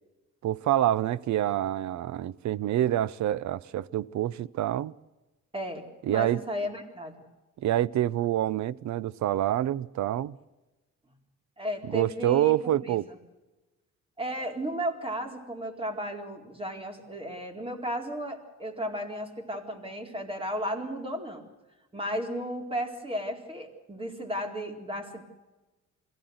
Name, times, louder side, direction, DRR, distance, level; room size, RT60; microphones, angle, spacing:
voice 1, 0.4-4.9 6.0-6.4 7.6-10.4 11.8-13.0, right 12 dB, 65° right, 0.7 m, -27 dB
voice 2, 5.5-5.8 6.1-7.1 11.6-13.0 14.2-21.5 21.9-25.2, equal, 20° right, 4.1 m, -34 dB
23.0 x 16.0 x 7.9 m
cardioid pair, 90°, 30 cm